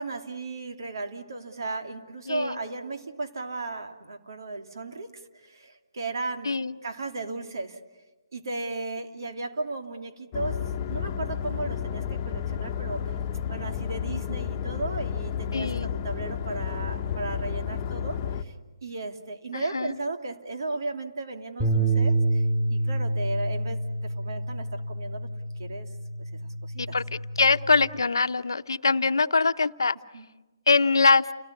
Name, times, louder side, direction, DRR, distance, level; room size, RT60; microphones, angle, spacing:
voice 1, 0.0-7.8 8.3-10.6 10.9-13.1 13.5-18.5 18.8-22.4 22.7-25.3 25.6-25.9 26.2-27.0 30.1-30.3, right 3 dB, 70° right, 5 dB, 3.0 m, -35 dB
voice 2, 2.3-2.6 6.4-6.7 15.5-15.9 19.5-19.9 26.8-27.0 27.4-29.9 30.7-31.3, left 4 dB, 85° left, 12 dB, 0.9 m, -23 dB
sound 1, 10.3-18.4, left 8 dB, 30° left, 1.3 m, -31 dB
Bass guitar, 21.6-27.8, right 2 dB, 10° right, 5.9 m, -28 dB
30.0 x 18.5 x 9.7 m, 1.2 s
hypercardioid pair, 155°, 2 cm